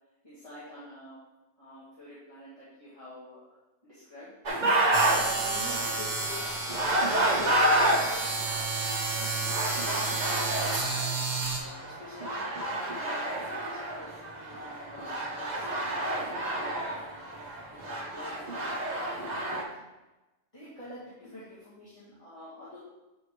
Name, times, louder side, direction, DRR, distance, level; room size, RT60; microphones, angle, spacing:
voice 1, 0.2-1.2 1.6-3.6 3.8-4.4 5.1-6.5 6.7-10.9 11.5-12.5 12.9-17.5 17.8-19.7 20.5-22.8, left 1 dB, 25° left, -11 dB, 1.8 m, -47 dB
sound 1, 4.5-19.6, right 1 dB, 40° right, 0.9 m, -30 dB
sound 2, 4.9-11.6, right 3 dB, 65° right, 1.4 m, -31 dB
8.2 x 5.0 x 3.2 m, 1.1 s
omnidirectional pair, 1.3 m